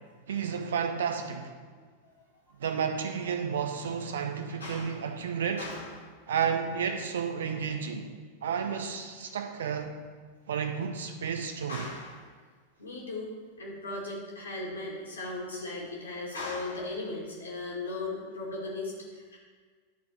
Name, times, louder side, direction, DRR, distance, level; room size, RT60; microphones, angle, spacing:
voice 1, 0.3-1.5 2.6-5.7 6.3-8.1 8.4-9.9 10.5-11.9, right 7 dB, 65° right, 6 dB, 0.8 m, -31 dB
voice 2, 4.6-5.0 5.6-6.1 11.7-12.2 12.8-13.3 13.6-19.4, left 2 dB, 75° left, -3 dB, 2.3 m, -37 dB
11.5 x 4.2 x 5.6 m, 1.5 s
figure-of-eight pair, 90°, 0 cm